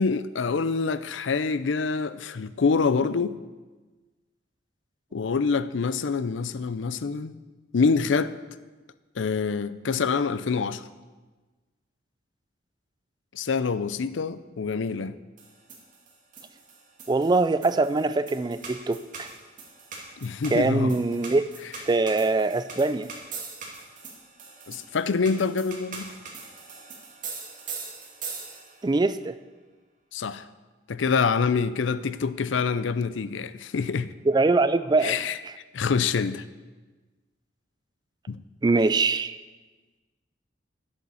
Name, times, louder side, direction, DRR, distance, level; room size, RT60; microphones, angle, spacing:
voice 1, 0.0-3.3 5.1-7.4 7.7-8.3 9.2-10.8 13.3-15.1 20.2-21.0 24.7-26.1 30.1-30.5 30.9-34.1 35.0-35.4 35.7-36.4 38.3-38.4, left 5 dB, 85° left, 0.5 m, -26 dB
sound 1, 15.4-28.9, right 4 dB, 45° right, 2.3 m, -42 dB
voice 2, 17.1-19.3 20.5-21.5 21.9-23.1 28.8-29.4 34.3-35.2 38.6-39.4, right 3 dB, 20° right, 0.3 m, -23 dB
11.0 x 8.0 x 7.0 m
head